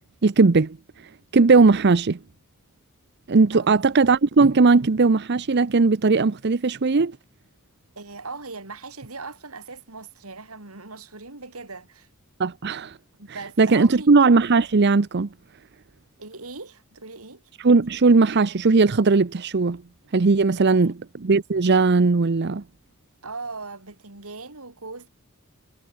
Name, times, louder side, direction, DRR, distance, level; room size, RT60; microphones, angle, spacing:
voice 1, 0.2-0.8 1.3-2.2 3.3-7.1 12.4-13.0 13.6-15.3 17.6-19.8 20.1-22.6, right 4 dB, 50° right, 0.6 m, -18 dB
voice 2, 8.0-12.1 13.2-14.1 16.2-17.4 20.6-20.9 23.2-25.1, right 3 dB, 90° right, 3.9 m, -39 dB
head